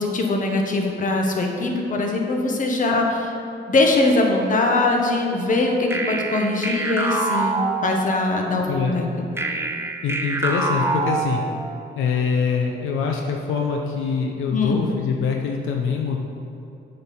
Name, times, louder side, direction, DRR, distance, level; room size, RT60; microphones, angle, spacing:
voice 1, 0.0-3.3 3.7-9.1 14.5-14.8, left 2 dB, 40° left, 1 dB, 1.1 m, -21 dB
sound 1, 5.9-8.4 9.4-11.9, right 2 dB, 10° right, 0.6 m, -26 dB
voice 2, 9.7-11.5 12.0-16.2, left 5 dB, 85° left, 1 dB, 0.7 m, -24 dB
7.8 x 5.5 x 4.3 m, 2.7 s
cardioid pair, 90°, 20 cm